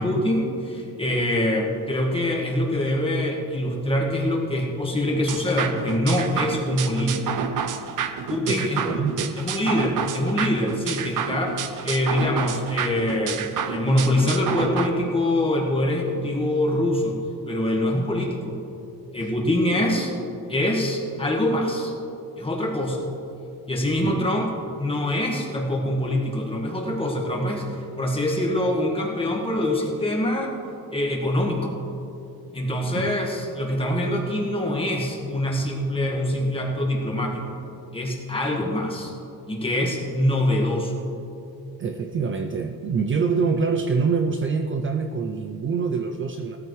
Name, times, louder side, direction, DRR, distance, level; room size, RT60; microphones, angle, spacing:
voice 1, 0.0-7.4 8.3-8.8 9.4-11.5 11.8-17.2 17.5-18.6 19.1-20.1 20.5-21.9 22.4-23.0 23.7-24.5 24.8-27.7 28.0-30.5 30.9-31.7 32.5-37.6 37.9-39.1 39.5-41.0, left 1 dB, 15° left, -1 dB, 1.7 m, -24 dB
sound 1, 5.3-14.9, right 7 dB, 60° right, 0.8 m, -29 dB
voice 2, 8.5-9.4 24.0-24.3 33.0-33.1 41.8-46.6, right 5 dB, 35° right, 6 dB, 0.5 m, -25 dB
17.5 x 14.0 x 3.2 m, 2.9 s
wide cardioid pair, 160°, 35 cm